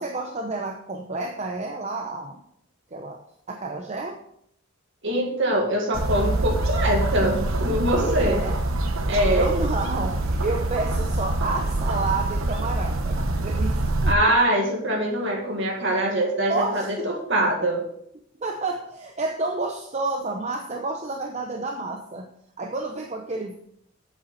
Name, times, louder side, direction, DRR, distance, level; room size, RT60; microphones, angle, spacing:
voice 1, 0.0-2.4 2.9-3.2 3.5-4.2 8.0-8.6 9.3-14.3 16.5-17.1 18.4-22.3 22.6-23.5, right 3 dB, 35° right, 3 dB, 0.7 m, -30 dB
voice 2, 5.0-8.4 9.1-9.7 14.0-17.8, right 1 dB, 60° right, -1 dB, 1.9 m, -23 dB
sound 1, 5.9-14.1, right 2 dB, 80° right, 1.0 m, -25 dB
8.4 x 7.9 x 4.0 m, 0.70 s
head